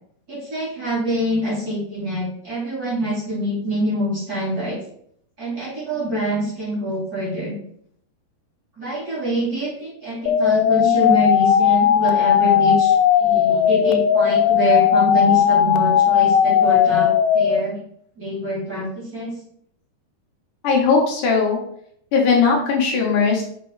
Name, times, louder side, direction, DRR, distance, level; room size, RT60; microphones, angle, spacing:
voice 1, 0.3-4.8 5.4-7.5 8.8-17.8 18.2-19.3, equal, 25° right, -7 dB, 3.2 m, -25 dB
sound 1, 10.3-17.6, left 9 dB, 90° left, 2.4 m, -17 dB
voice 2, 20.6-21.6 22.1-23.4, left 5 dB, 70° left, 0 dB, 2.7 m, -18 dB
6.5 x 6.1 x 3.9 m, 0.66 s
omnidirectional pair, 4.1 m